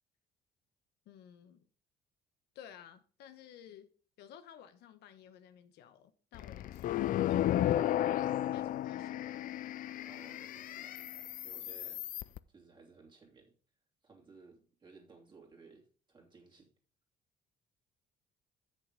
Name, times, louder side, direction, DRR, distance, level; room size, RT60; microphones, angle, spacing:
voice 1, 1.1-1.6 2.5-3.9 4.2-7.7 8.0-9.2, left 9 dB, 80° left, 1.0 m, -55 dB
sound 1, 6.3-12.4, left 12 dB, 55° left, 0.4 m, -34 dB
voice 2, 10.0-12.1 12.5-13.6 14.0-16.7, right 4 dB, 25° right, 2.9 m, -58 dB
7.9 x 6.7 x 5.2 m
cardioid pair, 110°, 17 cm